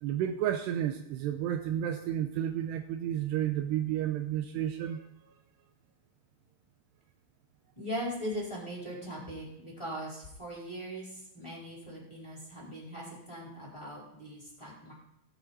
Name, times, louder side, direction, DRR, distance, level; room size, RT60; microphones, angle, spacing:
voice 1, 0.0-5.1, right 11 dB, 90° right, 6 dB, 2.3 m, -31 dB
voice 2, 7.8-14.9, equal, 5° left, -5 dB, 4.0 m, -40 dB
18.5 x 8.7 x 4.2 m, 0.78 s
omnidirectional pair, 5.7 m